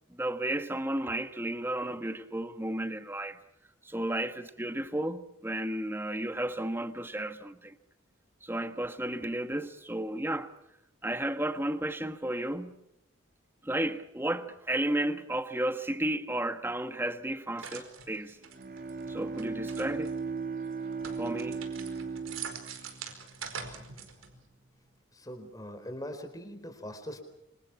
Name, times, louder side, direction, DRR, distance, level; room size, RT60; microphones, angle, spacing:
voice 1, 0.1-3.4 3.8-7.7 8.4-10.5 11.0-12.8 13.6-18.4 19.1-20.2 21.2-21.6, right 1 dB, 10° right, 1.4 m, -33 dB
sound 1, 17.6-20.2 20.7-24.4, right 6 dB, 85° right, 4.9 m, -44 dB
Bowed string instrument, 18.4-24.0, right 5 dB, 45° right, 1.9 m, -37 dB
voice 2, 25.1-27.2, equal, 15° left, 4.3 m, -41 dB
27.0 x 26.5 x 6.1 m
head